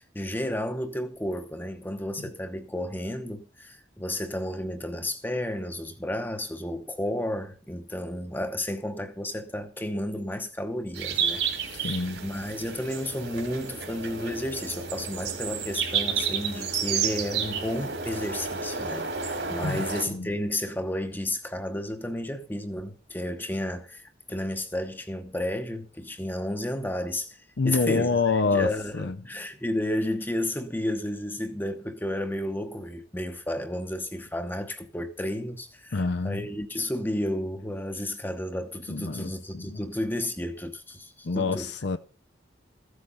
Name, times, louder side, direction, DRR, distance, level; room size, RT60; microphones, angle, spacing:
voice 1, 0.0-11.9 12.2-27.4 27.6-41.7, left 1 dB, 10° left, 1.0 m, -32 dB
sound 1, 10.9-20.0, right 6 dB, 65° right, 2.7 m, -31 dB
voice 2, 11.8-12.2 19.6-20.3 27.6-29.2 35.9-36.5 38.9-39.8 41.2-42.0, left 4 dB, 60° left, 0.6 m, -27 dB
14.5 x 8.1 x 5.6 m
head